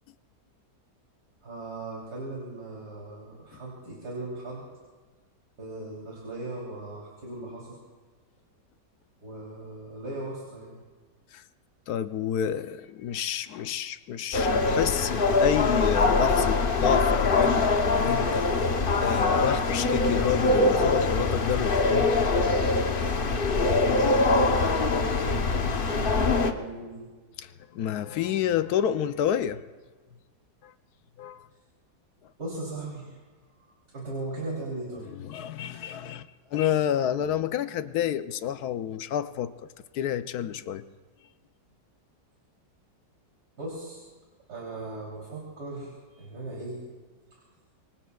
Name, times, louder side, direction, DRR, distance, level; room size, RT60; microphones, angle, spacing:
voice 1, 1.4-4.7 5.6-7.8 9.2-10.7 24.2-27.1 32.4-33.2 33.5-35.1 43.6-44.0 44.5-46.8, right 2 dB, 60° right, 3.8 m, -38 dB
voice 2, 11.9-18.5 19.0-22.1 27.4-27.5 27.7-29.6 31.2-31.4 35.2-39.5 39.9-40.8, left 10 dB, 70° left, 1.1 m, -29 dB
sound 1, 14.3-26.5, left 3 dB, 40° left, 0.8 m, -23 dB
26.0 x 23.5 x 2.3 m
omnidirectional pair, 1.9 m